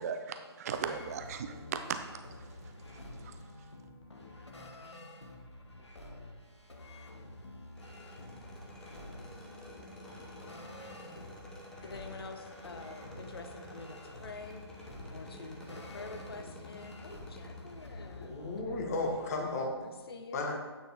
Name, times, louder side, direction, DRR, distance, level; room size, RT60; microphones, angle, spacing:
voice 1, 0.0-2.2 2.6-3.3, right 6 dB, 35° right, 8 dB, 0.4 m, -38 dB
sound 1, 0.6-19.7, left 2 dB, 85° left, 1.1 m, -49 dB
sound 2, 7.7-17.7, equal, 5° left, 0.7 m, -51 dB
voice 2, 11.8-14.6 15.1-19.0 19.8-20.5, left 3 dB, 60° left, 6 dB, 0.8 m, -47 dB
voice 3, 18.2-19.7 20.3-20.6, left 2 dB, 35° left, 1 dB, 1.2 m, -34 dB
8.8 x 4.3 x 3.5 m, 1.3 s
figure-of-eight pair, 145°, 14 cm